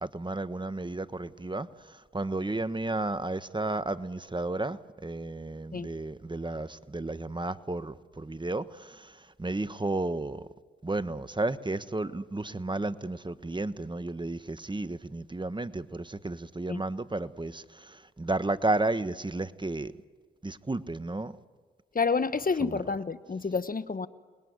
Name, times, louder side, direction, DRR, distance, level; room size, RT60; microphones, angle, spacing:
voice 1, 0.0-10.5 10.8-19.9 20.4-21.3 22.7-22.8, right 2 dB, 20° right, 13 dB, 1.3 m, -33 dB
voice 2, 21.9-24.1, left 4 dB, 40° left, 13 dB, 1.3 m, -29 dB
28.5 x 21.0 x 9.6 m, 1.5 s
supercardioid pair, 45°, 21 cm